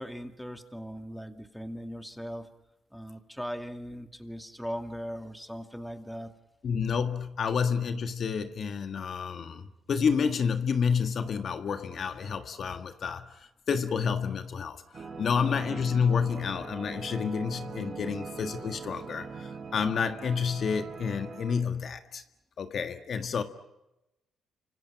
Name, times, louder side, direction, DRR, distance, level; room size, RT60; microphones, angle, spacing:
voice 1, 0.0-2.5 2.9-6.3, equal, ahead, 2.3 m, -39 dB
voice 2, 6.6-13.4 13.7-22.2 22.6-23.4, left 6 dB, 55° left, 1.7 m, -29 dB
sound 1, 14.9-21.6, right 4 dB, 45° right, 4.8 m, -41 dB
29.0 x 25.5 x 6.0 m
cardioid pair, 90°, 0 cm